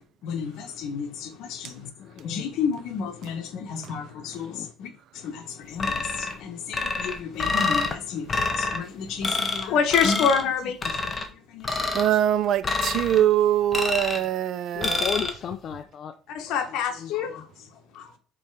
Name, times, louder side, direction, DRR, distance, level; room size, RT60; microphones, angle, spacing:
voice 1, 0.2-1.9 2.2-4.9 5.1-11.7 16.3-17.4 17.9-18.1, left 6 dB, 70° left, 1.2 m, -29 dB
voice 2, 2.0-2.5 4.4-4.7 14.8-16.1 16.9-17.4, left 8 dB, 40° left, 0.4 m, -35 dB
sound 1, 5.8-6.4 6.7-7.9 8.3-8.8 9.2-9.6 9.9-10.4 10.8-11.3 11.6-12.1 12.6-13.2 13.7-14.3 14.8-15.3, left 3 dB, 20° left, 0.8 m, -27 dB
voice 3, 11.9-15.1, right 11 dB, 50° right, 0.4 m, -23 dB
5.3 x 4.3 x 4.7 m
cardioid pair, 155°, 0 cm